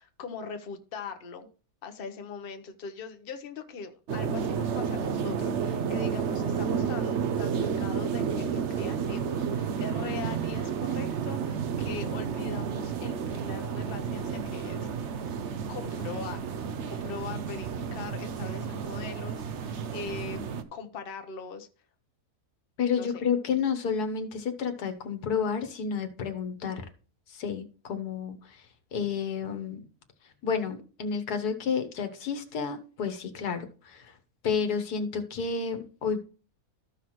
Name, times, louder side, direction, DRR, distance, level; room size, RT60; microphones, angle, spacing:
voice 1, 0.0-1.5 1.8-15.2 15.7-16.6 16.9-21.7 22.9-23.2, left 5 dB, 45° left, 1.0 m, -41 dB
sound 1, 4.1-20.6, right 6 dB, 55° right, 0.9 m, -31 dB
voice 2, 22.8-26.9 27.3-29.9 30.2-34.2 34.4-36.2, left 6 dB, 90° left, 1.6 m, -31 dB
14.0 x 5.8 x 3.1 m
omnidirectional pair, 1.6 m